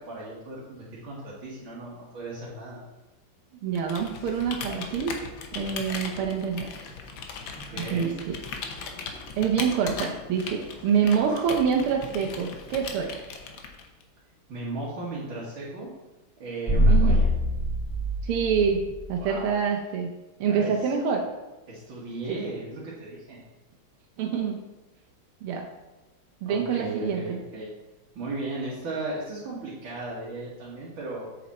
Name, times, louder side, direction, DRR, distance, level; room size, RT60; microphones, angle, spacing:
voice 1, 0.0-2.8 7.5-8.1 14.5-15.9 16.4-17.3 19.2-19.5 20.5-20.9 21.7-23.4 26.5-27.7 28.2-31.3, right 2 dB, 65° right, -6 dB, 2.3 m, -36 dB
voice 2, 3.6-5.1 5.5-6.7 7.8-8.4 9.4-13.2 16.9-17.2 18.2-18.8 19.1-20.1 20.4-21.2 22.3-22.4 24.2-24.6 25.4-25.7 26.4-27.4, right 6 dB, 80° right, 2 dB, 1.7 m, -26 dB
Computer keyboard, 3.7-14.0, left 5 dB, 65° left, 1.6 m, -38 dB
sound 1, 16.7-19.1, equal, 30° right, 0.5 m, -23 dB
7.6 x 7.0 x 4.2 m, 1.1 s
omnidirectional pair, 2.4 m